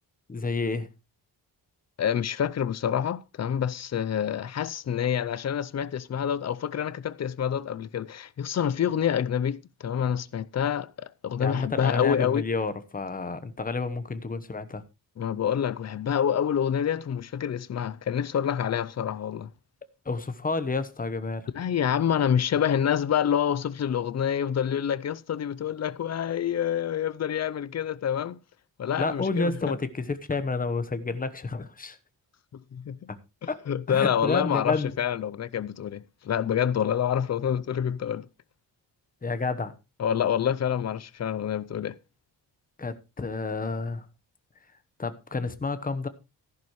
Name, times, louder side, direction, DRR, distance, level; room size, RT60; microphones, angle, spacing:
voice 1, 0.3-0.9 11.4-14.8 20.1-21.5 29.0-32.0 33.1-33.2 33.5-33.6 33.9-34.9 39.2-39.7 42.8-44.1 45.0-46.1, left 3 dB, 20° left, 1.1 m, -30 dB
voice 2, 2.0-12.4 15.2-19.5 21.5-28.4 28.8-29.7 32.7-33.1 33.7-38.3 40.0-42.0, left 8 dB, 40° left, 0.6 m, -27 dB
14.0 x 11.0 x 3.1 m
wide cardioid pair, 150°, 40 cm